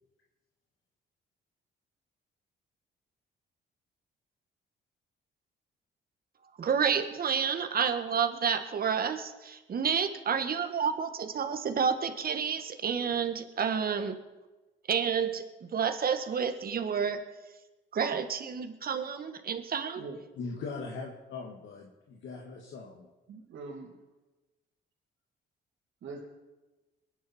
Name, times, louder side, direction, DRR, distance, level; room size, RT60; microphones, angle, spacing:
voice 1, 6.6-14.2 14.9-15.4 15.7-17.2 17.9-20.0, right 7 dB, 50° right, 8 dB, 1.7 m, -30 dB
voice 2, 20.4-23.1, left 4 dB, 70° left, -1 dB, 2.1 m, -40 dB
voice 3, 23.3-24.0 26.0-26.2, right 4 dB, 70° right, -3 dB, 2.8 m, -42 dB
22.5 x 10.0 x 4.4 m, 1.1 s
cardioid pair, 90°, 20 cm